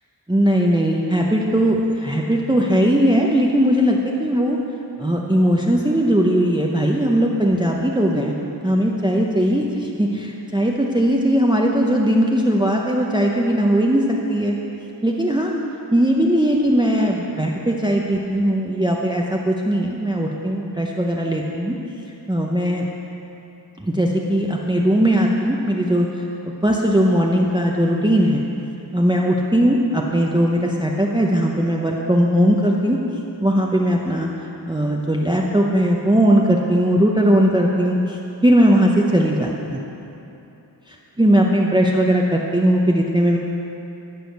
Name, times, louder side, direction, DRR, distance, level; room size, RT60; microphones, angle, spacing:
voice 1, 0.3-4.6 5.0-8.3 8.6-14.6 15.0-15.6 15.9-21.8 22.3-22.9 23.8-26.2 26.6-28.4 28.9-33.0 33.4-34.3 34.7-39.8 40.9-43.4, equal, 10° right, -1 dB, 0.7 m, -19 dB
14.0 x 5.0 x 6.5 m, 2.9 s
wide cardioid pair, 50°, 44 cm